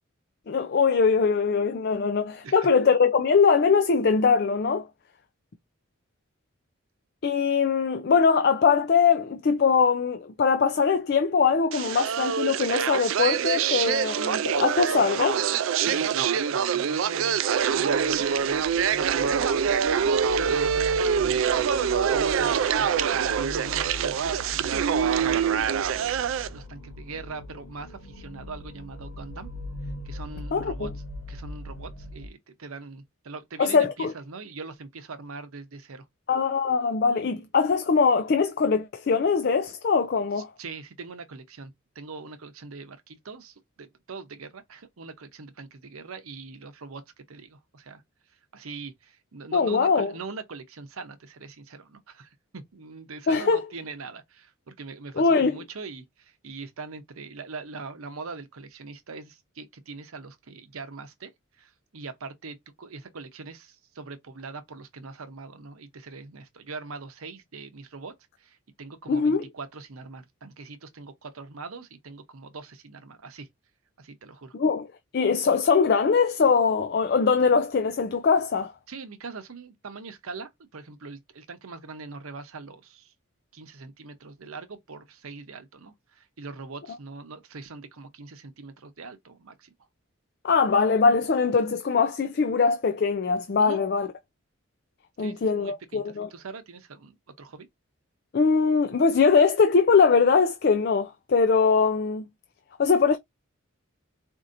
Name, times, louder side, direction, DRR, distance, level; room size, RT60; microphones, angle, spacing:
voice 1, 0.5-4.9 7.2-15.5 30.5-30.9 33.6-34.1 36.3-40.5 49.5-50.1 53.3-53.6 55.2-55.6 69.1-69.4 74.5-74.9 75.1-78.7 90.4-94.1 95.2-96.3 98.3-102.2 102.8-103.2, left 5 dB, 50° left, 0.4 m, -22 dB
sound 1, 11.7-26.5, right 7 dB, 70° right, 0.4 m, -25 dB
voice 2, 15.8-17.4 17.7-19.8 20.0-21.5 22.0-25.9 26.2-29.5 30.0-30.9 31.3-36.0 40.4-48.0 48.5-61.3 61.6-73.5 74.0-74.5 78.9-83.1 83.5-89.7 93.6-93.8 95.2-97.7, right 4 dB, 85° right, 0.8 m, -42 dB
sound 2, 17.5-32.3, left 1 dB, 80° left, 0.9 m, -41 dB
4.4 x 2.7 x 2.5 m
head